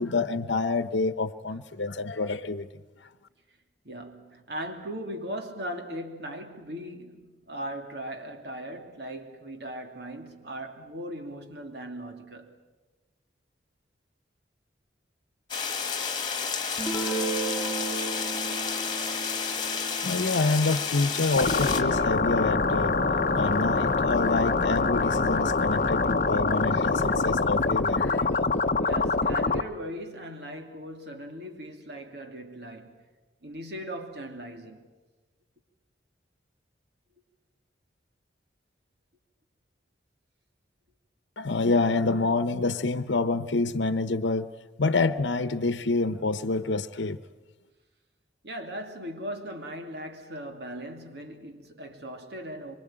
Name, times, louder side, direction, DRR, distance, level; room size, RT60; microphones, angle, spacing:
voice 1, 0.0-2.7 20.0-23.0 23.3-28.5 41.4-44.5 44.8-47.2, left 3 dB, 85° left, 0.9 m, -27 dB
voice 2, 3.8-12.6 28.8-33.0 33.4-34.9 48.4-52.7, right 1 dB, 65° right, 2.9 m, -38 dB
sound 1, 15.5-21.8, left 6 dB, 25° left, 2.4 m, -31 dB
Guitar, 16.8-22.3, right 3 dB, 5° right, 4.9 m, -36 dB
sound 2, 21.4-29.6, left 3 dB, 45° left, 0.8 m, -25 dB
25.5 x 25.0 x 8.9 m
head